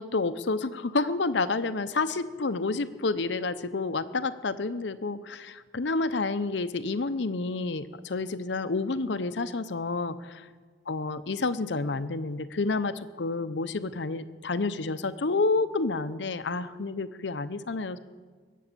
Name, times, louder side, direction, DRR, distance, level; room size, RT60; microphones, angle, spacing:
voice 1, 0.0-10.2 10.9-18.0, left 3 dB, 85° left, 13 dB, 0.8 m, -29 dB
22.5 x 8.5 x 6.8 m, 1.5 s
head